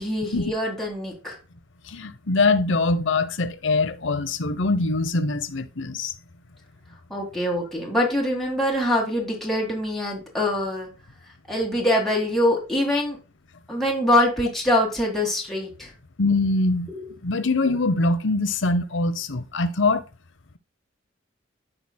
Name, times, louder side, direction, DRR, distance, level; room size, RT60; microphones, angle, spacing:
voice 1, 0.0-1.4 7.1-10.9 11.5-13.2 13.7-15.9 16.9-17.0, left 1 dB, ahead, 1.7 m, -24 dB
voice 2, 1.9-6.1 16.2-16.9 17.2-20.0, left 3 dB, 70° left, 0.8 m, -23 dB
14.0 x 5.0 x 2.2 m
head